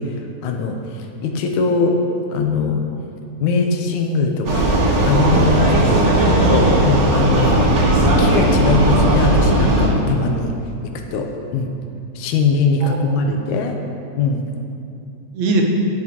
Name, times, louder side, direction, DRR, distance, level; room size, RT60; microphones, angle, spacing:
voice 1, 0.0-2.0 2.3-2.8 3.4-4.7 5.0-5.7 6.3-7.8 8.2-10.5 11.1-11.7 12.2-13.8 14.2-14.4, left 4 dB, 80° left, 3 dB, 2.2 m, -21 dB
Vehicle, 4.4-9.9, right 1 dB, 45° right, 1.7 m, -16 dB
voice 2, 5.6-6.8 12.8-13.2 15.3-15.6, right 3 dB, 70° right, 0 dB, 2.1 m, -24 dB
12.0 x 9.6 x 3.0 m, 2.6 s
omnidirectional pair, 3.4 m